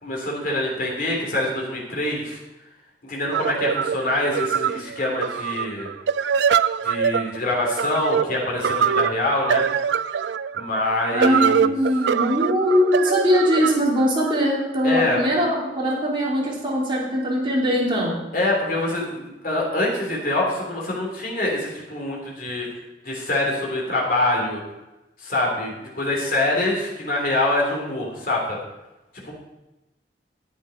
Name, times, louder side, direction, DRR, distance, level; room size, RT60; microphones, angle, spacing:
voice 1, 0.0-2.4 3.0-5.9 6.8-9.6 10.5-11.7 14.8-15.2 18.3-22.7 23.0-24.6 25.2-28.6 29.2-29.3, left 2 dB, 55° left, -2 dB, 3.2 m, -25 dB
sound 1, 3.3-14.9, right 7 dB, 80° right, 0.4 m, -24 dB
voice 2, 11.1-18.1, equal, 30° right, -5 dB, 3.0 m, -21 dB
11.0 x 8.4 x 5.1 m, 0.98 s
head